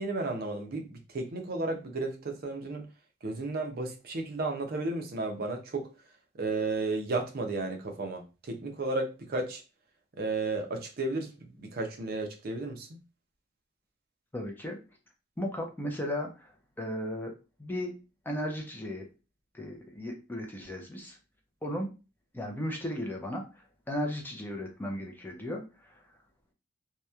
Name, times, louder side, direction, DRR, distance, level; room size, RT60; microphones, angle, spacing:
voice 1, 0.0-2.9 3.2-5.9 6.4-9.6 10.2-13.0, right 3 dB, 50° right, 0.5 m, -33 dB
voice 2, 14.3-14.8 15.4-16.5 16.8-17.3 17.6-17.9 18.3-19.0 19.5-21.2 21.6-21.9 22.3-26.0, equal, 10° left, 0.4 m, -35 dB
2.8 x 2.1 x 2.3 m
head